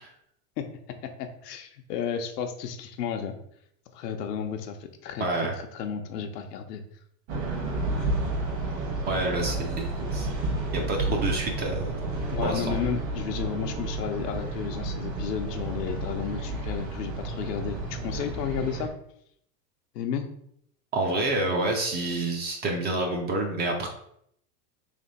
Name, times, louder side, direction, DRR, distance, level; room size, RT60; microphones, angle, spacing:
voice 1, 1.2-3.3 3.9-6.8 12.3-18.9 19.9-20.3, left 7 dB, 80° left, 6 dB, 0.8 m, -32 dB
voice 2, 5.2-5.5 9.1-10.3 10.7-12.0 12.4-12.7 20.9-23.9, right 2 dB, 20° right, 2 dB, 0.4 m, -28 dB
sound 1, 7.3-18.9, right 2 dB, 50° right, 1.4 m, -31 dB
3.4 x 2.9 x 4.0 m, 0.71 s
supercardioid pair, 125°, 47 cm